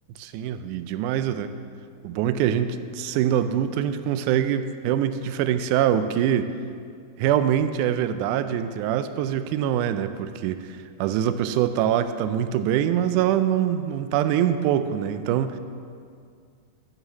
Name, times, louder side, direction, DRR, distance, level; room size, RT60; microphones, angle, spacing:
voice 1, 0.2-1.5 2.0-6.5 7.2-15.6, right 10 dB, 80° right, 10 dB, 1.9 m, -24 dB
8.0 x 7.3 x 7.1 m, 2.3 s
omnidirectional pair, 3.8 m